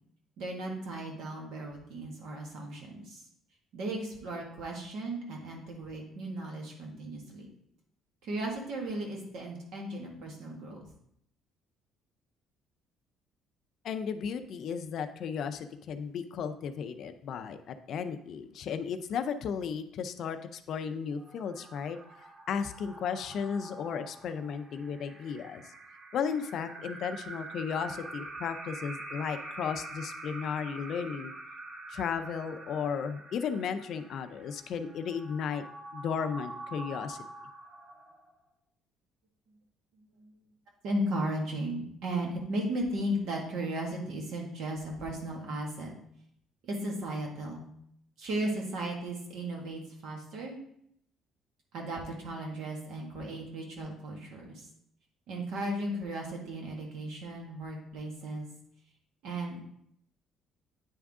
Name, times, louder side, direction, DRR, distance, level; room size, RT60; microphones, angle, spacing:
voice 1, 0.4-3.2 3.7-7.5 8.2-10.9 39.9-40.5 40.8-45.9 46.6-47.7 48.2-50.6 51.7-54.7 55.3-58.5 59.2-59.6, right 1 dB, 70° right, 0 dB, 1.6 m, -36 dB
voice 2, 13.8-25.6 26.1-31.3 31.9-35.6 35.9-37.2, left 6 dB, 55° left, 9 dB, 0.4 m, -35 dB
sound 1, 21.1-38.5, right 2 dB, 40° right, 1.1 m, -45 dB
9.2 x 3.6 x 3.6 m, 0.71 s
cardioid pair, 135°, 0 cm